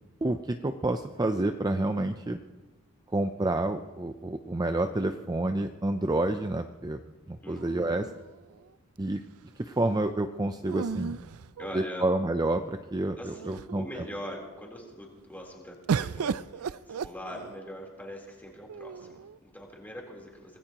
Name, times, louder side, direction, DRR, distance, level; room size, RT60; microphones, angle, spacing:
voice 1, 0.2-2.4 3.1-7.0 7.3-8.1 9.0-9.2 9.6-11.2 11.7-13.8, right 2 dB, 20° right, 7 dB, 0.5 m, -29 dB
voice 2, 7.4-8.1 11.6-12.1 13.2-20.6, equal, 10° left, -2 dB, 3.7 m, -43 dB
sound 1, 7.6-8.7 10.6-12.2 12.9-13.0 13.3-13.9 15.9-17.8 18.7-19.4, right 6 dB, 70° right, 0.4 m, -35 dB
25.5 x 18.5 x 3.0 m, 1.2 s
head